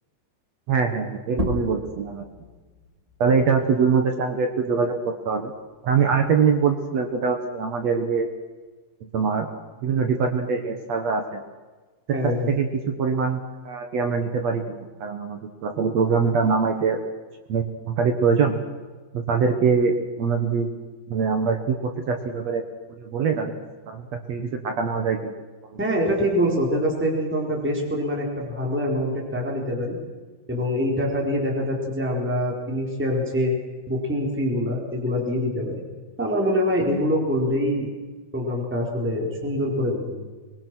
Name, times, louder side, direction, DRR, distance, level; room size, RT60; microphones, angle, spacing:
voice 1, 0.7-2.3 3.2-5.5 5.8-8.3 9.1-9.5 9.8-11.4 12.1-17.0 17.5-18.6 19.1-20.7 21.1-22.6 23.0-23.5 23.9-25.3 25.7-25.8, right 5 dB, 60° right, 5 dB, 1.8 m, -23 dB
sound 1, 1.3-6.5 6.9-8.7, equal, 40° right, 0.5 m, -36 dB
voice 2, 12.1-12.5 25.8-30.0 30.5-33.5 33.9-35.8 36.2-37.9 38.3-40.1, equal, 5° right, -1 dB, 3.8 m, -24 dB
25.0 x 21.0 x 6.2 m, 1.3 s
omnidirectional pair, 4.8 m